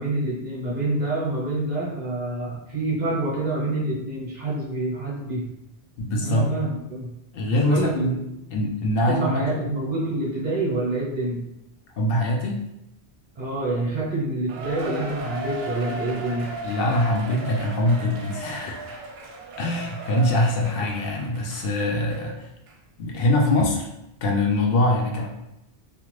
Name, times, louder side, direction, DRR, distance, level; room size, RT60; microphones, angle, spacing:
voice 1, 0.0-5.5 6.2-7.1 7.6-8.1 9.0-11.5 13.4-16.5, right 2 dB, 45° right, -5 dB, 0.9 m, -27 dB
voice 2, 6.0-6.5 7.3-8.2 8.5-9.5 12.0-12.6 16.6-19.0 19.6-22.5 23.0-23.9 24.2-25.3, left 1 dB, 65° left, 0 dB, 0.7 m, -23 dB
Cheering, 14.5-22.3 22.7-22.8 23.4-23.5, right 2 dB, 75° right, 0.8 m, -36 dB
2.5 x 2.4 x 3.1 m, 0.86 s
omnidirectional pair, 1.1 m